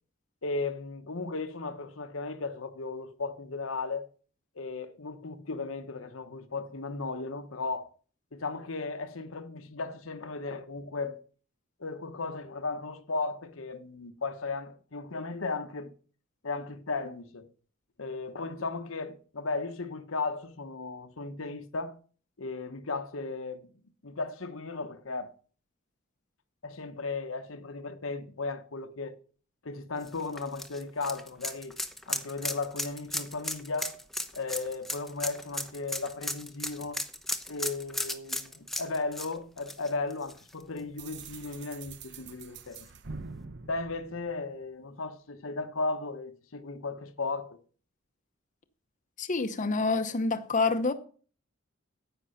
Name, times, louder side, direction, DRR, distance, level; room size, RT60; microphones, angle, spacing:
voice 1, 0.4-4.1 4.6-7.9 8.3-11.2 11.8-15.9 16.4-17.5 18.0-22.0 22.4-23.7 24.0-25.3 26.6-29.2 29.6-31.8 32.1-34.0 34.3-37.0 37.5-42.9 43.7-47.6, left 3 dB, 80° left, 1.1 m, -35 dB
sound 1, 30.0-40.8 41.2-41.3 42.7-42.8, left 1 dB, ahead, 0.9 m, -36 dB
sound 2, 41.0-44.8, right 4 dB, 60° right, 0.9 m, -45 dB
voice 2, 49.2-50.9, left 3 dB, 40° left, 0.8 m, -27 dB
10.0 x 8.9 x 5.7 m
head